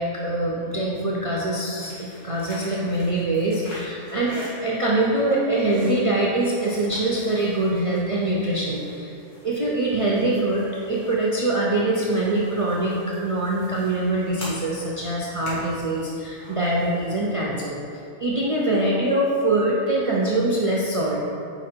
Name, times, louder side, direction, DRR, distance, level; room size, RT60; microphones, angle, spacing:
voice 1, 0.0-9.1 9.4-17.8 18.2-21.2, right 2 dB, 45° right, -5 dB, 0.4 m, -24 dB
sound 1, 1.7-17.2, equal, 70° left, 1.7 m, -44 dB
5.0 x 4.5 x 4.3 m, 2.7 s
omnidirectional pair, 1.2 m